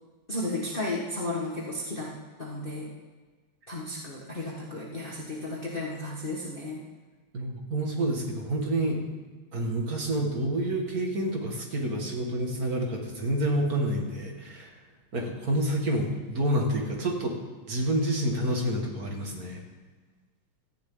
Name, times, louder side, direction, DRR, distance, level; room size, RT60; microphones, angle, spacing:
voice 1, 0.3-2.1 2.4-2.9 3.7-6.8, left 2 dB, 25° left, -4 dB, 1.7 m, -33 dB
voice 2, 7.3-9.0 9.5-14.8 15.1-17.4 17.7-19.6, right 1 dB, 45° right, 0 dB, 2.4 m, -28 dB
16.5 x 14.0 x 3.9 m, 1.3 s
omnidirectional pair, 2.4 m